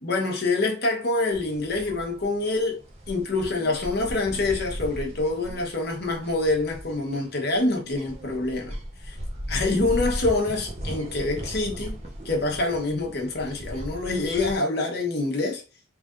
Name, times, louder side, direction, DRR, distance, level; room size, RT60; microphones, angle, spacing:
voice 1, 0.0-2.8 3.1-8.8 9.0-9.2 9.5-12.0 12.2-15.6, left 2 dB, 50° left, 1.0 m, -26 dB
sound 1, 1.3-14.6, equal, 30° right, 0.8 m, -37 dB
3.3 x 2.5 x 3.7 m
head